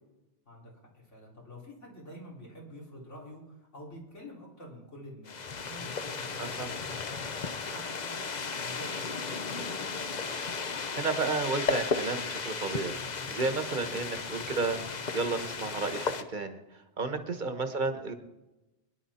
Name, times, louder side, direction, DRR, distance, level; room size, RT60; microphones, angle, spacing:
voice 1, 0.5-8.2 8.6-9.5 17.1-17.3, equal, 80° left, -3 dB, 4.1 m, -48 dB
sound 1, 5.3-16.2, left 4 dB, 40° left, 0.8 m, -35 dB
voice 2, 10.9-13.0 13.3-14.8 15.1-16.6 17.0-18.1, right 3 dB, 40° right, 7 dB, 1.3 m, -32 dB
23.0 x 10.5 x 4.3 m, 1.0 s
omnidirectional pair, 1.2 m